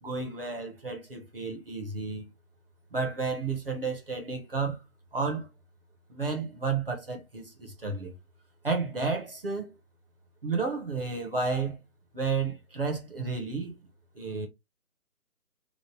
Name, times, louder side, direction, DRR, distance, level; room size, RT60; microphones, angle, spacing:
voice 1, 0.0-2.3 2.9-4.8 5.1-5.5 6.1-8.1 8.6-9.7 10.4-11.8 12.1-13.7 14.2-14.5, right 4 dB, 40° right, 0.7 m, -32 dB
3.0 x 2.0 x 3.0 m
figure-of-eight pair, 170°, 44 cm